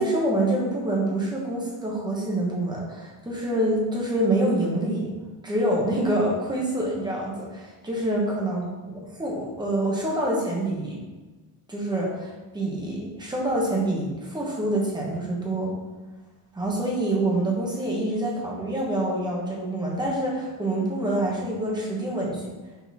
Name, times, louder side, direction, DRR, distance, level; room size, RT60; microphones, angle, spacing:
voice 1, 0.0-5.1 5.4-8.9 9.2-11.0 11.7-15.7 16.5-22.4, right 1 dB, 10° right, -3 dB, 1.1 m, -26 dB
6.1 x 4.0 x 4.2 m, 1.2 s
cardioid pair, 175°, 43 cm